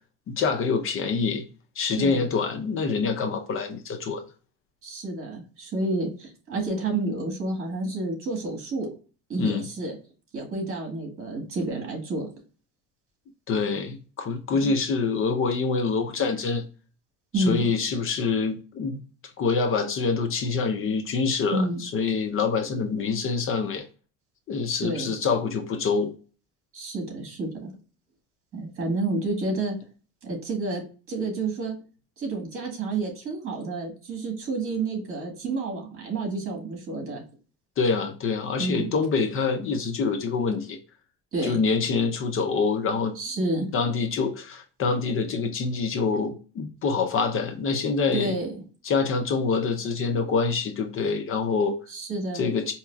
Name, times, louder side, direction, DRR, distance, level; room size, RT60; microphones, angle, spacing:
voice 1, 0.3-1.4 1.8-4.2 9.4-9.6 13.5-16.6 17.4-19.0 19.4-23.8 24.5-26.1 37.8-40.8 41.4-43.1 43.7-48.3 48.8-51.7 52.3-52.7, left 4 dB, 40° left, 0.5 m, -26 dB
voice 2, 1.9-2.3 4.8-8.9 9.3-10.0 10.3-12.3 14.5-14.7 17.3-17.7 21.5-21.8 24.8-25.1 26.7-27.7 28.5-29.8 30.2-30.8 31.1-31.8 32.2-37.2 38.6-38.9 41.3-41.6 43.2-43.7 48.1-48.6 51.9-52.4, right 2 dB, 45° right, 1.7 m, -29 dB
4.7 x 2.9 x 2.2 m
cardioid pair, 145°, 32 cm